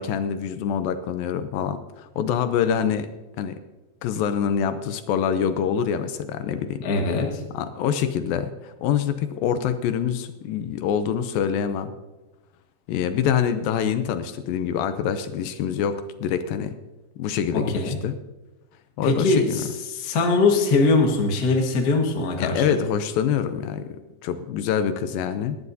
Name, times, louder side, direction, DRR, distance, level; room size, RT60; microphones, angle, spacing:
voice 1, 0.0-3.1 3.4-3.6 4.0-6.8 7.5-11.9 12.9-16.8 17.2-18.2 19.0-19.6 22.4-23.9 24.2-25.6, left 8 dB, 80° left, 10 dB, 2.3 m, -25 dB
voice 2, 6.8-7.4 17.5-18.0 19.0-22.8, left 3 dB, 65° left, 1 dB, 0.9 m, -22 dB
18.5 x 12.0 x 2.7 m, 1.1 s
omnidirectional pair, 4.4 m